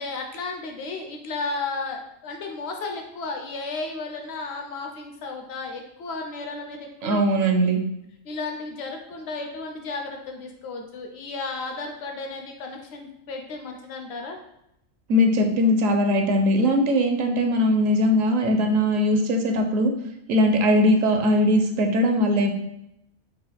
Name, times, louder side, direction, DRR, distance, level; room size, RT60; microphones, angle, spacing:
voice 1, 0.0-7.7 8.2-14.4, left 3 dB, 60° left, 3 dB, 1.0 m, -34 dB
voice 2, 7.0-7.8 15.1-19.9 20.3-22.5, equal, 80° right, 4 dB, 1.1 m, -20 dB
4.9 x 2.3 x 4.1 m, 0.79 s
omnidirectional pair, 1.3 m